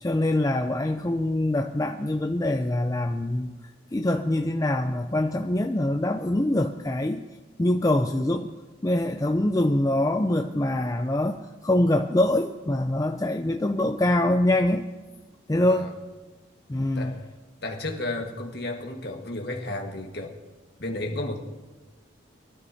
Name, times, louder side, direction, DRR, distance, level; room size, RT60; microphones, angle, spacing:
voice 1, 0.0-3.5 3.9-7.2 7.6-8.5 8.8-14.9 15.5-15.9 16.7-17.1, left 1 dB, 15° left, 5 dB, 0.4 m, -24 dB
voice 2, 17.6-20.3 20.8-21.4, left 2 dB, 55° left, 2 dB, 1.6 m, -32 dB
23.0 x 12.5 x 2.8 m, 1.2 s
head